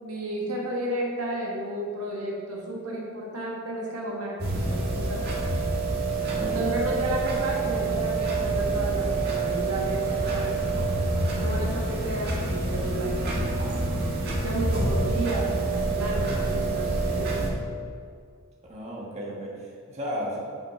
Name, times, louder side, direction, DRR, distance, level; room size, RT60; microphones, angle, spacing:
voice 1, 0.0-5.3 6.4-10.9 11.4-13.6 14.4-17.4, right 1 dB, 85° right, -3 dB, 1.7 m, -32 dB
sound 1, 4.4-17.5, right 3 dB, 45° right, 1.5 m, -27 dB
voice 2, 6.3-6.8 18.7-20.4, equal, 30° right, -5 dB, 1.3 m, -34 dB
7.8 x 5.8 x 4.8 m, 2.1 s
head